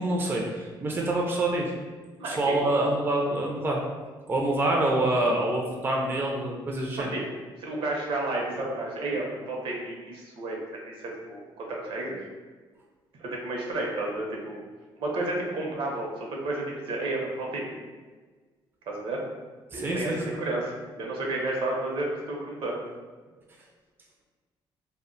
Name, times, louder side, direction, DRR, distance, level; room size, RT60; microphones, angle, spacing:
voice 1, 0.0-1.7 2.2-3.8 4.3-7.1 19.7-20.4, right 1 dB, 20° right, -1 dB, 0.4 m, -26 dB
voice 2, 2.2-2.7 7.0-7.2 7.6-12.2 13.2-14.6 15.0-17.8 18.9-19.2 19.7-22.8, right 2 dB, 65° right, -1 dB, 0.7 m, -32 dB
2.1 x 2.1 x 3.7 m, 1.4 s
cardioid pair, 95°, 10 cm